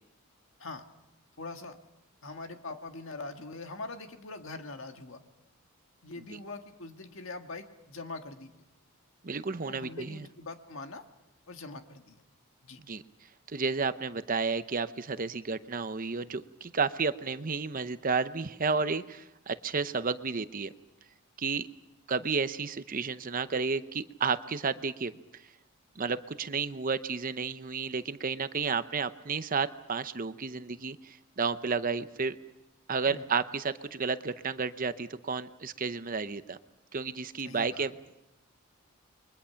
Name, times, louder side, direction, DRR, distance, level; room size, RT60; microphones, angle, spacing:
voice 1, 1.4-1.8 2.2-5.2 6.0-8.5 9.6-11.0 11.5-12.2 12.6-12.8 33.1-33.3 37.4-37.9, left 3 dB, 60° left, 6 dB, 1.8 m, -43 dB
voice 2, 9.2-10.3 12.9-13.0 13.5-20.7 21.4-21.7 22.1-25.1 26.0-32.4 32.9-36.6 36.9-37.9, right 4 dB, 40° right, 12 dB, 0.7 m, -32 dB
29.5 x 23.0 x 5.8 m, 0.96 s
head